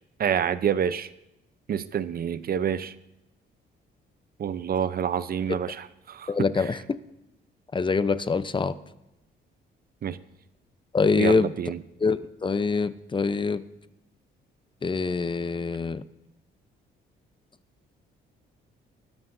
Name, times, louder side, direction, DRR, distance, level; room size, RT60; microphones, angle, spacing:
voice 1, 0.2-1.1 1.7-2.9 4.4-6.3 10.0-10.2 11.2-11.8, right 8 dB, 50° right, 14 dB, 0.7 m, -27 dB
voice 2, 6.3-6.8 7.7-8.7 10.9-11.5 12.0-13.6 14.8-16.0, left 4 dB, 25° left, 13 dB, 0.7 m, -25 dB
24.0 x 13.0 x 2.7 m, 0.92 s
cardioid pair, 90°, 20 cm